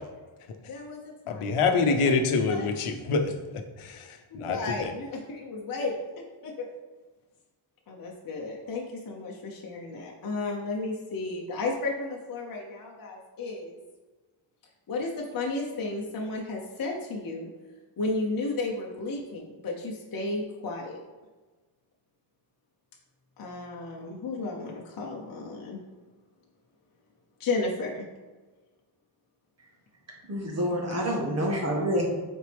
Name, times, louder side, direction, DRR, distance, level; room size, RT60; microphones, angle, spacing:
voice 1, 0.7-1.0 1.3-2.1 2.5-2.7 4.3-5.9 6.4-6.7 7.9-13.8 14.9-17.5 18.0-21.0 23.4-25.8 27.4-28.1, left 3 dB, 45° left, -2 dB, 1.0 m, -33 dB
voice 2, 1.3-4.9, left 4 dB, 85° left, 6 dB, 1.0 m, -27 dB
voice 3, 30.3-32.1, equal, 30° right, -1 dB, 1.4 m, -27 dB
8.0 x 4.4 x 3.5 m, 1.3 s
wide cardioid pair, 145°, 50 cm